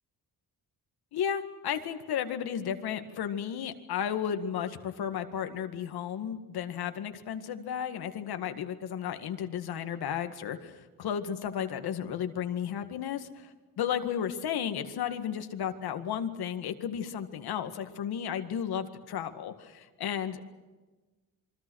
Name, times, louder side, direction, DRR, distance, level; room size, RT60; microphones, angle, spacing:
voice 1, 1.1-20.4, left 8 dB, 80° left, 8 dB, 2.0 m, -33 dB
27.5 x 24.0 x 6.4 m, 1.2 s
wide cardioid pair, 180°, 37 cm